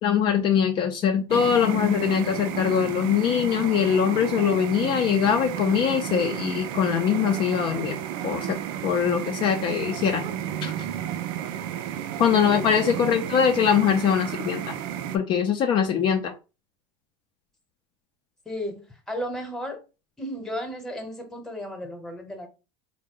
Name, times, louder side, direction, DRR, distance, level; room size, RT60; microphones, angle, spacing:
voice 1, 0.0-8.0 8.2-8.6 8.8-10.2 10.6-10.7 12.2-14.8 15.1-16.3, left 8 dB, 45° left, 0.5 m, -22 dB
sound 1, 1.3-15.2, right 10 dB, 70° right, 0.5 m, -32 dB
voice 2, 18.5-19.8 20.2-22.5, equal, 5° left, 1.0 m, -34 dB
3.6 x 2.1 x 3.7 m
supercardioid pair, 125°, 12 cm